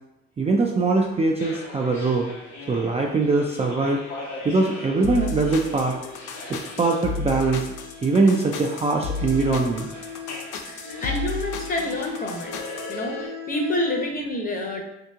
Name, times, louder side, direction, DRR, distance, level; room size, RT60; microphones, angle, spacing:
voice 1, 0.4-2.3 2.7-4.0 4.4-6.0 6.5-7.7 8.0-9.9, right 3 dB, 20° right, 0 dB, 0.3 m, -22 dB
sound 1, 1.4-13.3, left 2 dB, 70° left, 1.0 m, -40 dB
sound 2, 5.0-12.9, left 4 dB, 85° left, 0.5 m, -33 dB
sound 3, 5.1-14.1, left 5 dB, 85° right, 0.9 m, -41 dB
voice 2, 10.7-12.5 12.9-14.8, left 1 dB, 30° left, 1 dB, 0.8 m, -28 dB
2.8 x 2.6 x 3.5 m, 0.86 s
cardioid pair, 90°, 30 cm